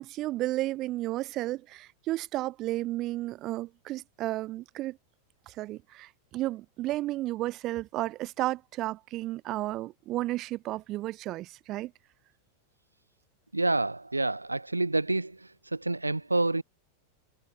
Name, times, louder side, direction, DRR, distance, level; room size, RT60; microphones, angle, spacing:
voice 1, 0.0-5.0 5.5-11.9, right 16 dB, 35° right, 3.4 m, -33 dB
voice 2, 13.5-16.6, right 2 dB, 85° right, 2.8 m, -28 dB
figure-of-eight pair, 90°, 0 cm